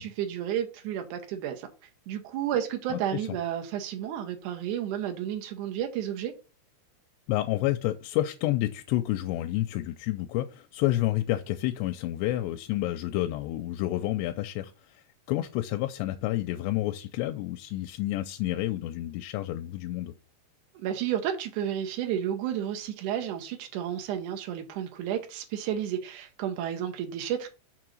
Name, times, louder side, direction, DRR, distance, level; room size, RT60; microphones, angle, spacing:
voice 1, 0.0-1.7 2.1-6.3 20.7-27.5, right 10 dB, 85° right, 1.7 m, -31 dB
voice 2, 7.3-20.1, left 15 dB, 85° left, 2.7 m, -29 dB
6.3 x 3.8 x 6.2 m
omnidirectional pair, 4.9 m